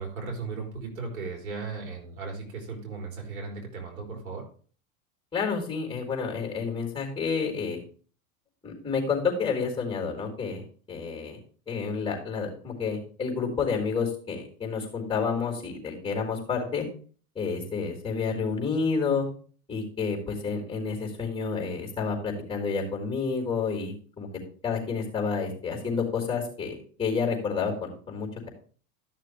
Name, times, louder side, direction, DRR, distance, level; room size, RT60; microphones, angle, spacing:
voice 1, 0.0-4.4, right 4 dB, 80° right, 0 dB, 4.3 m, -36 dB
voice 2, 5.3-7.8 8.6-10.6 10.9-11.4 11.7-16.9 17.3-19.2 19.7-24.3 24.6-28.5, left 5 dB, 15° left, 2 dB, 4.2 m, -29 dB
13.0 x 6.6 x 3.3 m, 0.42 s
hypercardioid pair, 100°, 41 cm